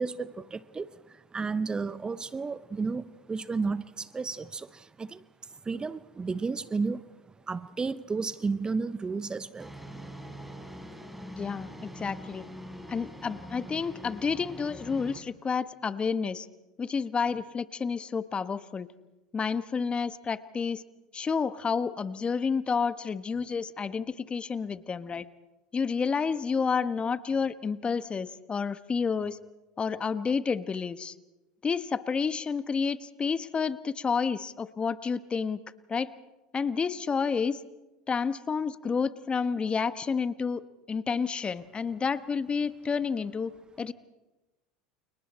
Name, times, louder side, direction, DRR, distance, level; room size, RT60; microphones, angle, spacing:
voice 1, 0.0-5.2 5.5-7.0 7.5-9.8, right 4 dB, 20° right, 16 dB, 0.9 m, -32 dB
sound 1, 9.6-15.2, equal, 5° right, 4.5 m, -43 dB
voice 2, 11.4-12.4 12.9-16.5 16.8-18.9 19.3-20.8 21.1-25.2 25.7-29.4 29.8-31.1 31.6-35.6 35.9-36.1 36.5-37.6 38.1-43.5 43.8-43.9, left 5 dB, 25° left, 13 dB, 1.3 m, -30 dB
30.0 x 29.0 x 4.3 m, 1.1 s
hypercardioid pair, 80°, 4 cm